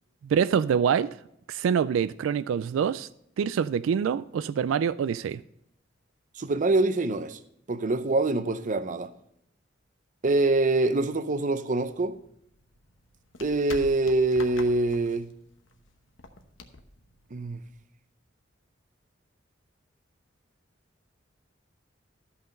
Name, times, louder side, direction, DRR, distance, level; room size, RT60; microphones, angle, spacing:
voice 1, 0.2-1.1 1.5-3.1 3.4-5.4, right 7 dB, 90° right, 0.3 m, -25 dB
voice 2, 6.4-7.4 7.7-9.1 10.2-12.2 13.4-15.3 17.3-17.6, right 2 dB, 40° right, 0.6 m, -25 dB
sound 1, 11.9-17.8, left 3 dB, 75° left, 1.0 m, -46 dB
13.0 x 5.7 x 5.2 m
head